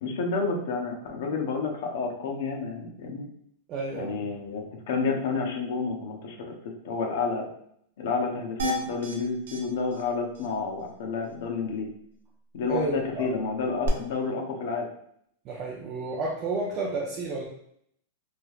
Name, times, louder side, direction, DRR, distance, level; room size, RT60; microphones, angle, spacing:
voice 1, 0.0-3.3 3.9-7.5 8.0-11.9 12.5-14.9, left 4 dB, 60° left, 2 dB, 0.6 m, -30 dB
voice 2, 3.7-4.2 12.7-13.3 15.5-17.5, right 2 dB, 25° right, -3 dB, 0.4 m, -31 dB
sound 1, 8.6-9.2 9.5-9.6 9.9-10.0 10.3-10.5 13.8-13.9, right 1 dB, 80° right, 0.7 m, -30 dB
3.2 x 2.7 x 2.3 m, 0.69 s
supercardioid pair, 170°, 0 cm